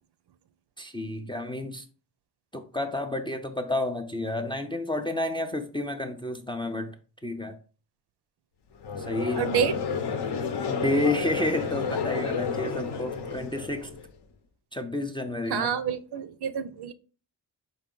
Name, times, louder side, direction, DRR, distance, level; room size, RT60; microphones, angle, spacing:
voice 1, 0.8-1.8 2.5-6.9 7.2-7.6 9.0-9.5 10.7-13.9 14.7-15.7, left 2 dB, 10° left, 0.4 m, -30 dB
Conversation / Crowd, 8.8-14.1, left 5 dB, 65° left, 0.8 m, -31 dB
voice 2, 9.4-9.8 15.5-16.9, right 8 dB, 65° right, 0.6 m, -28 dB
4.6 x 3.0 x 3.7 m
wide cardioid pair, 115°, 44 cm